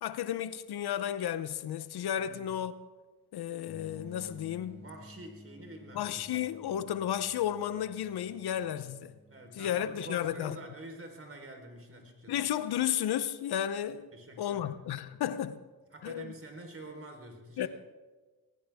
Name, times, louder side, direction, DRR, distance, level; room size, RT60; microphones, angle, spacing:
voice 1, 0.0-2.7 3.3-4.8 5.9-9.2 9.6-10.6 12.3-14.1 14.4-15.6 16.0-16.3 17.6-17.7, left 10 dB, 75° left, 0.8 m, -33 dB
voice 2, 2.1-2.5 4.8-6.3 9.3-12.4 14.1-14.8 15.9-17.7, right 2 dB, 35° right, 4.2 m, -47 dB
sound 1, 3.6-10.2, left 2 dB, 15° left, 6.4 m, -54 dB
20.0 x 18.5 x 3.6 m
cardioid pair, 70°, 38 cm